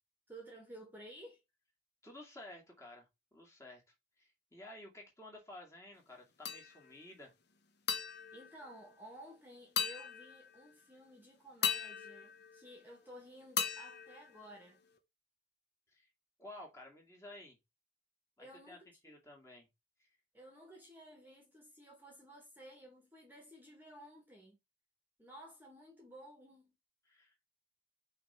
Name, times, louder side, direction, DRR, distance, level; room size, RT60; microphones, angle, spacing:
voice 1, 0.3-1.4 8.3-14.8 18.4-18.9 20.3-24.6 25.2-26.7, right 1 dB, 10° right, 1.7 m, -54 dB
voice 2, 2.0-3.1 3.3-3.8 4.2-7.3 15.9-16.1 16.4-17.6 18.4-18.8 19.0-19.7 20.0-20.1 27.1-27.3, left 1 dB, 15° left, 2.3 m, -53 dB
sound 1, 6.5-7.1 7.9-9.3 9.8-10.8 11.6-13.1 13.6-15.0, left 7 dB, 55° left, 1.0 m, -39 dB
5.8 x 3.7 x 5.5 m
head